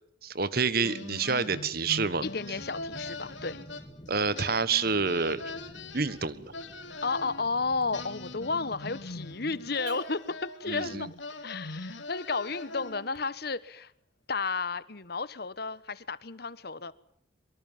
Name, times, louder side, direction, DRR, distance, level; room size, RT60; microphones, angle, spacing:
voice 1, 0.2-2.3 4.1-5.4 5.9-6.5 10.7-11.1, right 4 dB, 55° right, 16 dB, 1.5 m, -28 dB
sound 1, 0.8-4.1 4.3-7.4 7.9-13.2, left 2 dB, 80° left, 3.0 m, -42 dB
sound 2, 1.8-9.8, equal, 25° left, 3.3 m, -51 dB
voice 2, 2.2-3.6 7.0-11.1 11.4-13.9 14.3-16.9, left 4 dB, 55° left, 16 dB, 1.3 m, -32 dB
Car / Alarm, 4.0-13.2, right 5 dB, 75° right, 4.2 m, -59 dB
23.5 x 23.5 x 7.4 m, 0.70 s
head